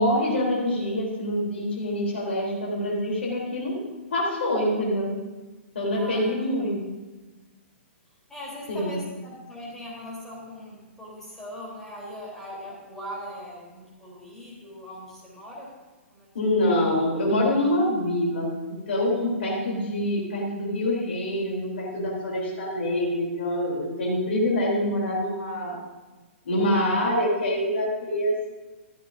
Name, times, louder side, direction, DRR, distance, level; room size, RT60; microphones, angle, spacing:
voice 1, 0.0-3.8 4.1-5.1 5.7-6.8 8.7-9.0 16.3-18.6 18.9-25.8 26.5-28.5, left 1 dB, 60° left, -3 dB, 3.5 m, -25 dB
voice 2, 5.9-6.3 8.3-15.7 16.1-16.3, equal, 5° left, -6 dB, 3.6 m, -40 dB
14.0 x 14.0 x 2.7 m, 1.2 s
figure-of-eight pair, 115°, 7 cm